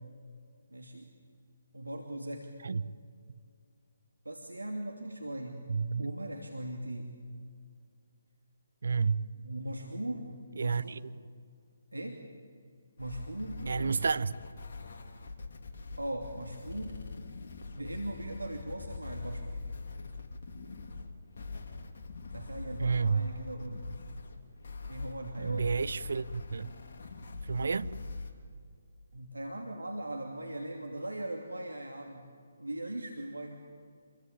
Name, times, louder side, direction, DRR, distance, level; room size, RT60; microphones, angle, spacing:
voice 1, 0.7-1.1 1.7-2.5 4.2-5.6 6.0-7.1 9.3-11.0 11.9-12.2 13.0-14.1 16.0-17.0 17.7-19.5 22.3-23.9 24.9-25.9 29.1-32.2 32.6-33.6, right 1 dB, 85° right, 2.7 m, -39 dB
voice 2, 5.7-6.1 8.8-9.3 10.6-11.0 13.7-14.3 22.8-23.3 25.4-26.7 27.5-27.9, right 5 dB, 60° right, 0.8 m, -30 dB
sound 1, 13.0-28.3, left 3 dB, 55° left, 3.2 m, -43 dB
27.5 x 22.5 x 8.6 m
figure-of-eight pair, 145°, 0 cm